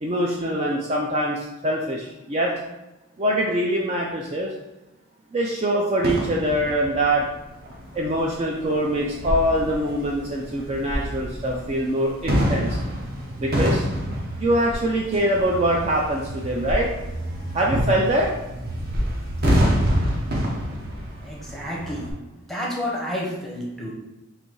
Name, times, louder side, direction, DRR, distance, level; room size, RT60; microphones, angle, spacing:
voice 1, 0.0-2.5 3.2-4.5 5.3-7.2 7.9-12.8 13.4-13.9 14.4-16.9 17.5-18.3, right 1 dB, 30° right, -2 dB, 0.3 m, -23 dB
sound 1, 6.0-7.3 7.6-22.1, equal, 45° right, 0.8 m, -27 dB
voice 2, 21.2-22.1 22.5-23.9, left 1 dB, ahead, -3 dB, 0.7 m, -30 dB
4.1 x 2.6 x 4.5 m, 1.0 s
head